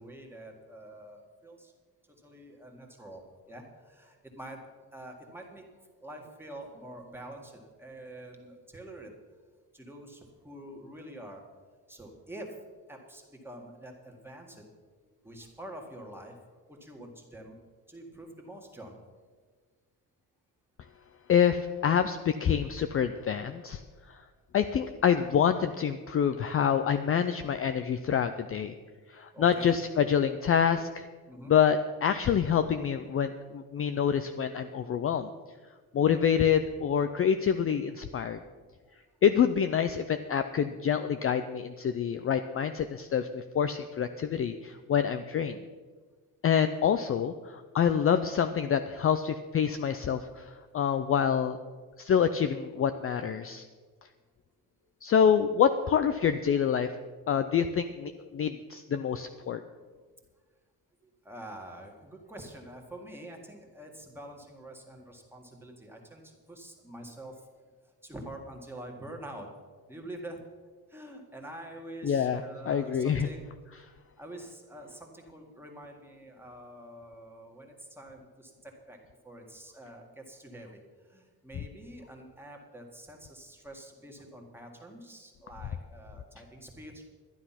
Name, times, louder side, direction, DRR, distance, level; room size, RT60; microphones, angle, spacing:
voice 1, 0.0-1.7 2.1-9.1 9.7-11.5 11.7-12.6 12.9-14.9 15.2-17.6 17.9-19.0 24.0-24.1 29.3-29.8 31.3-31.5 34.7-34.8 38.8-38.9 59.7-59.8 61.0-67.7 68.0-69.5 69.9-70.4 70.9-73.8 74.2-79.0 79.2-87.0, right 1 dB, 5° right, 1 dB, 1.8 m, -46 dB
voice 2, 21.3-23.8 24.5-28.7 29.1-31.1 31.5-35.3 35.9-38.4 39.2-45.6 46.4-51.6 52.0-53.6 55.0-56.9 57.3-59.6 72.0-73.3, left 8 dB, 35° left, 9 dB, 0.5 m, -26 dB
12.0 x 10.0 x 5.8 m, 1.5 s
cardioid pair, 140°, 38 cm